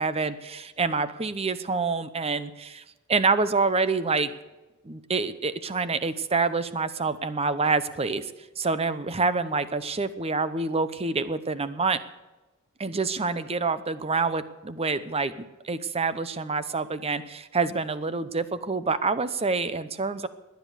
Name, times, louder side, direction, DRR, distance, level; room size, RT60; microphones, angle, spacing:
voice 1, 0.0-2.8 3.1-4.3 4.8-8.3 8.6-12.0 12.8-20.3, right 4 dB, 25° right, 13 dB, 0.8 m, -27 dB
18.0 x 10.5 x 7.0 m, 1.1 s
head